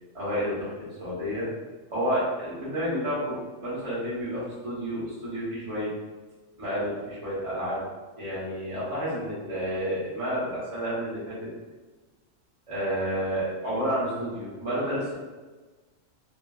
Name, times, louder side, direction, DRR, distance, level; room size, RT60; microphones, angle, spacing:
voice 1, 0.1-1.5 1.9-5.9 6.6-7.8 8.2-11.5 12.7-15.1, equal, 25° right, -9 dB, 1.0 m, -30 dB
2.8 x 2.5 x 2.3 m, 1.3 s
omnidirectional pair, 1.4 m